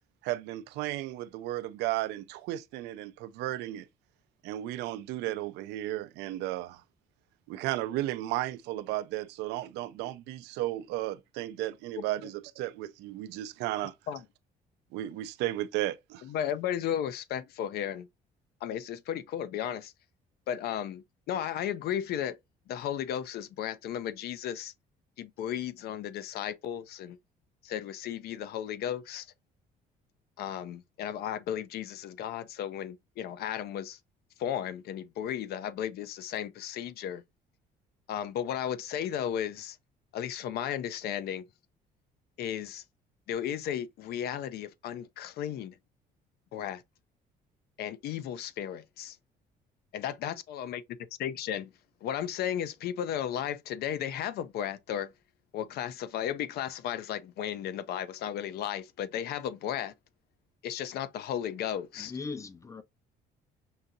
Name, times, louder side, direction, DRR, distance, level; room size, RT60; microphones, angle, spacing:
voice 1, 0.2-3.9 4.4-6.8 7.5-13.9 14.9-16.2, right 15 dB, 90° right, 0.5 m, -34 dB
voice 2, 16.2-18.1 18.6-19.9 20.5-22.4 22.7-24.7 25.2-27.2 27.6-29.3 30.4-34.0 34.4-37.2 38.1-39.8 40.1-41.4 42.4-42.8 43.3-45.7 46.5-46.8 47.8-49.2 49.9-50.8 51.2-51.7 52.0-55.1 55.5-59.9 60.6-62.1, left 10 dB, 70° left, 0.5 m, -34 dB
voice 3, 62.0-62.8, left 4 dB, 20° left, 0.5 m, -39 dB
5.5 x 2.7 x 2.4 m
cardioid pair, 110°, 17 cm